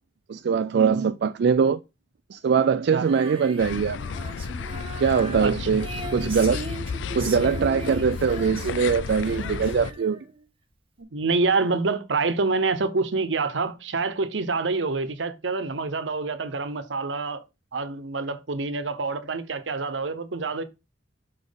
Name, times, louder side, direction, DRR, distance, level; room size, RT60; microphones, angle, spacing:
voice 1, 0.3-1.8 2.3-4.0 5.0-5.9 6.1-6.6 7.1-10.2, right 6 dB, 65° right, 0.4 m, -22 dB
Female singing, 3.0-10.4, right 3 dB, 30° right, 1.4 m, -40 dB
sound 1, 3.6-9.9, left 5 dB, 85° left, 0.5 m, -32 dB
voice 2, 5.4-5.8 11.0-17.4 17.7-20.6, right 3 dB, 80° right, 0.8 m, -27 dB
5.8 x 4.2 x 5.1 m
head